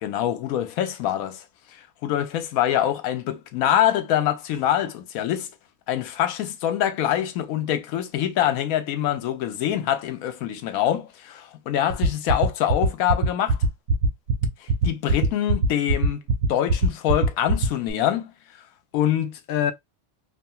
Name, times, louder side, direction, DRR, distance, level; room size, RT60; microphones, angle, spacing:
voice 1, 0.0-1.4 1.7-5.5 5.9-13.6 14.6-16.2 16.5-18.3 18.9-19.7, left 11 dB, 85° left, 1.0 m, -25 dB
sound 1, 11.9-17.9, right 3 dB, 75° right, 1.1 m, -20 dB
3.0 x 2.3 x 2.6 m
omnidirectional pair, 1.4 m